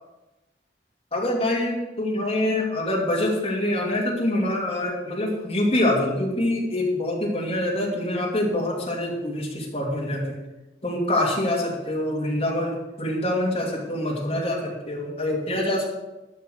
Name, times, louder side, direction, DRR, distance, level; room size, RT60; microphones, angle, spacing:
voice 1, 1.1-10.4 10.8-15.9, left 1 dB, 35° left, -2 dB, 2.6 m, -25 dB
12.0 x 5.7 x 7.9 m, 1.0 s
head